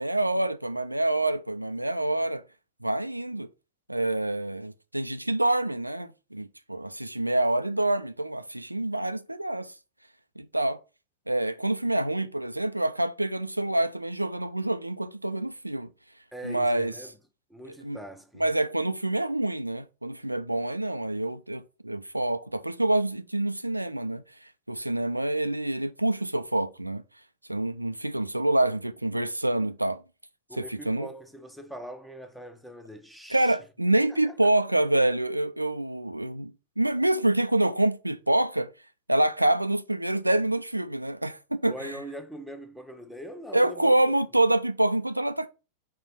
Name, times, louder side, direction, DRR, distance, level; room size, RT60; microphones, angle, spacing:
voice 1, 0.0-2.4 2.8-3.5 3.9-9.7 10.4-10.8 11.3-15.9 16.4-16.9 17.8-18.0 18.4-24.2 24.7-27.0 27.5-30.0 30.6-31.1 33.3-38.7 39.1-42.0 43.5-45.5, right 1 dB, 85° right, 0.3 m, -26 dB
voice 2, 16.3-17.1 17.5-18.4 30.5-33.6 34.3-34.5 41.6-44.0, equal, ahead, 0.8 m, -42 dB
4.3 x 4.2 x 5.2 m
figure-of-eight pair, 90°, 0 cm